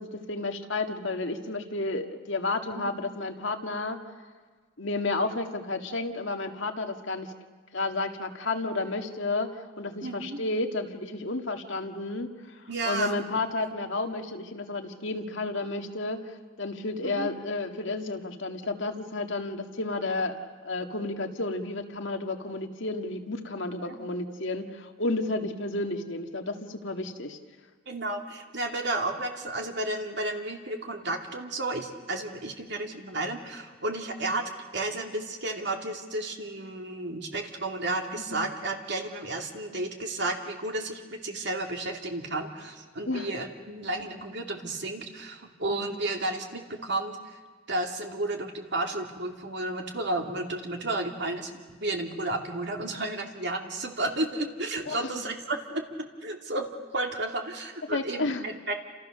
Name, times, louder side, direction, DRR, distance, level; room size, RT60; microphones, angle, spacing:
voice 1, 0.0-4.0 4.8-7.3 7.7-27.4 38.2-38.5 43.1-43.3 45.7-46.0 54.9-55.3 57.9-58.5, left 2 dB, 60° left, 5 dB, 1.8 m, -32 dB
voice 2, 10.0-10.4 12.7-13.2 13.6-13.7 17.0-17.3 23.7-24.0 27.9-47.4 47.7-55.8 56.2-56.7 56.9-58.7, right 2 dB, 55° right, 3 dB, 2.8 m, -32 dB
29.0 x 27.5 x 6.7 m, 1.5 s
head